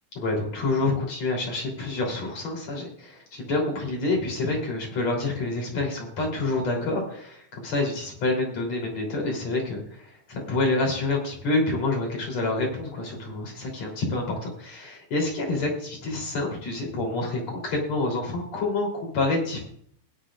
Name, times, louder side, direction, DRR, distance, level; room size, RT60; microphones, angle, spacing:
voice 1, 0.2-19.6, left 2 dB, 60° left, 0 dB, 4.6 m, -27 dB
19.0 x 10.5 x 2.5 m, 0.63 s
omnidirectional pair, 3.4 m